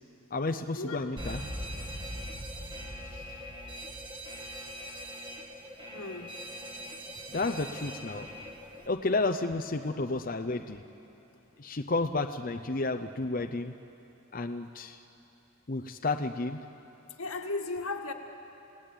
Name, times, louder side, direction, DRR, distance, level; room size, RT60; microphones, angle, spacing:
voice 1, 0.3-1.4 7.3-8.3 8.9-10.8 11.6-13.7 14.3-15.0 15.7-16.6, left 3 dB, 40° left, 7 dB, 0.6 m, -31 dB
Alarm, 1.2-8.9, equal, 20° right, 1.6 m, -41 dB
voice 2, 5.9-6.3 17.2-18.1, left 3 dB, 90° left, 3 dB, 2.0 m, -35 dB
29.0 x 18.0 x 9.0 m, 3.0 s
head